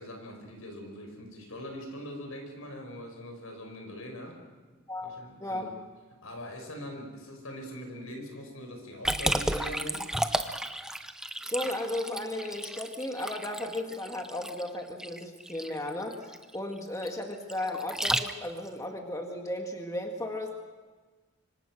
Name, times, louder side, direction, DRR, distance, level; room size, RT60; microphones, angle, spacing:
voice 1, 0.0-4.4 5.0-5.6 6.2-10.1, equal, 85° left, 3 dB, 5.9 m, -42 dB
Liquid, 9.0-18.7, right 1 dB, 5° right, 0.7 m, -33 dB
voice 2, 11.5-20.6, left 1 dB, 15° left, 2 dB, 1.8 m, -35 dB
25.5 x 25.0 x 6.4 m, 1.3 s
head